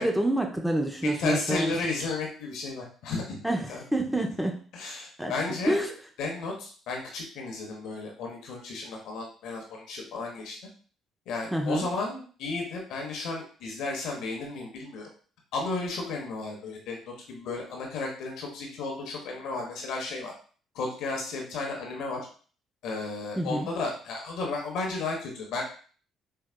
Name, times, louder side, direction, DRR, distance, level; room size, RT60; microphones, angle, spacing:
voice 1, 0.0-1.7 3.4-4.6 5.2-5.3 5.7-5.9 11.5-11.9 23.4-23.7, right 1 dB, 5° right, 2 dB, 0.7 m, -27 dB
voice 2, 1.0-3.4 3.7-3.8 4.7-5.8 6.2-10.6 11.3-15.1 15.5-20.3 20.7-22.3 22.8-25.6, left 3 dB, 70° left, 1 dB, 1.0 m, -33 dB
4.5 x 2.3 x 2.2 m, 0.42 s
hypercardioid pair, 55°, 0 cm